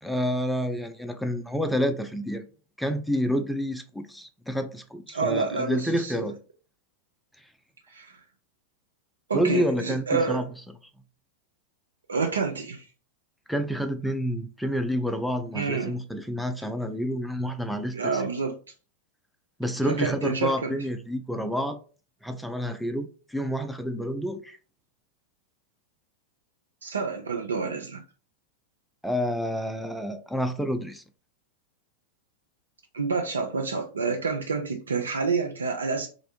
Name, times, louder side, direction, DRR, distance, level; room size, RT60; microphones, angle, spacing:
voice 1, 0.0-2.5 2.8-6.4 9.3-10.4 13.5-18.2 19.6-21.8 22.2-24.6 29.0-31.0, equal, ahead, 0.3 m, -29 dB
voice 2, 5.1-6.3 7.9-8.2 9.3-10.4 12.1-12.9 15.5-15.9 17.9-18.5 19.8-20.7 26.8-28.0 32.9-36.1, right 4 dB, 85° right, 0.4 m, -28 dB
2.5 x 2.0 x 2.9 m
hypercardioid pair, 95°, 0 cm